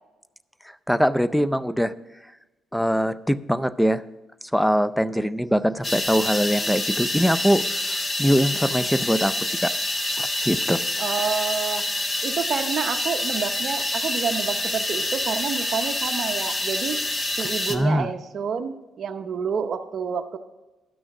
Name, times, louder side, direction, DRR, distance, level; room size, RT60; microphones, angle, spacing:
voice 1, 0.9-1.9 2.7-4.0 4.5-7.6 8.2-9.7 10.2-10.8 17.7-18.1, equal, 5° left, 16 dB, 0.4 m, -22 dB
sound 1, 5.8-17.8, left 1 dB, 25° left, 0.9 m, -27 dB
voice 2, 11.0-17.0 17.4-20.4, right 6 dB, 55° right, 5 dB, 0.7 m, -29 dB
12.0 x 6.3 x 5.9 m, 1.1 s
cardioid pair, 90°, 0 cm